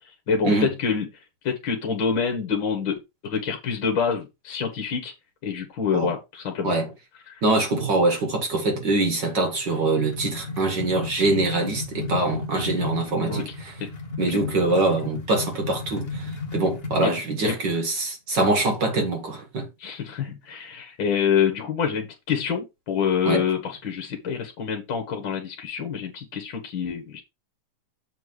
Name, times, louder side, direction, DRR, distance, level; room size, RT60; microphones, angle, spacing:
voice 1, 0.3-1.1 1.4-3.0 3.2-5.1 5.4-6.7 7.3-7.4 13.1-13.4 13.8-13.9 14.3-14.4 17.0-17.1 17.4-17.5 19.8-27.2, left 6 dB, 50° left, 1.8 m, -26 dB
voice 2, 7.4-13.7 14.2-19.9 23.3-23.5, right 2 dB, 45° right, 1.9 m, -24 dB
sound 1, 9.7-17.2, left 4 dB, 90° left, 0.5 m, -34 dB
7.6 x 3.5 x 6.3 m
omnidirectional pair, 3.4 m